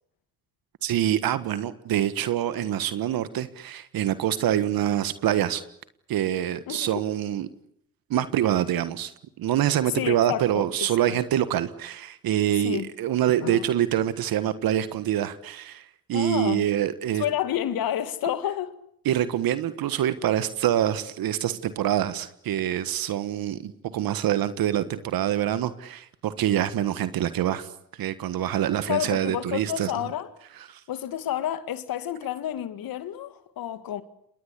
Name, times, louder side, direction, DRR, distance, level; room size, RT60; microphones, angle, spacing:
voice 1, 0.8-5.6 6.1-7.5 8.1-9.1 9.4-17.2 19.0-29.9 30.7-30.8, right 11 dB, 70° right, 1.5 m, -25 dB
voice 2, 6.7-7.0 9.9-11.2 12.6-12.9 13.4-13.6 16.1-16.7 17.2-18.8 28.9-30.3 30.9-34.0, left 11 dB, 70° left, 2.0 m, -30 dB
28.5 x 21.5 x 8.3 m
supercardioid pair, 60°, 37 cm